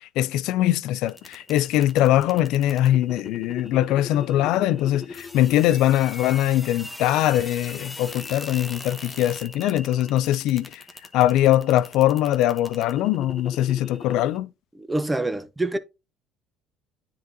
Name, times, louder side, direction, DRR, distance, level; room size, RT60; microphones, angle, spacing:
voice 1, 0.2-10.8 11.1-14.5, left 13 dB, 75° left, 0.3 m, -22 dB
sound 1, 1.1-14.4, left 3 dB, 15° left, 0.9 m, -40 dB
voice 2, 14.9-15.8, right 2 dB, 10° right, 0.6 m, -25 dB
9.4 x 3.9 x 2.7 m
cardioid pair, 110°, 0 cm